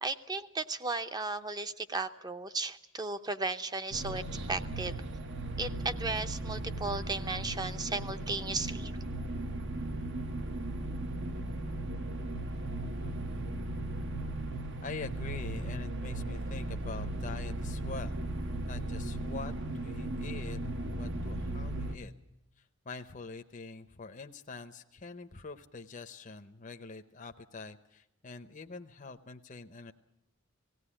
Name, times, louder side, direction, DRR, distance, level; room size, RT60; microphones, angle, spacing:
voice 1, 0.0-4.2 4.5-5.0 5.6-9.0, right 3 dB, 20° right, 10 dB, 0.7 m, -35 dB
sound 1, 3.9-22.0, right 1 dB, 60° right, 1.0 m, -37 dB
voice 2, 14.8-18.2 18.7-20.6 20.9-22.1 22.6-29.9, left 4 dB, 40° left, 6 dB, 0.7 m, -45 dB
18.0 x 16.5 x 10.0 m, 0.84 s
head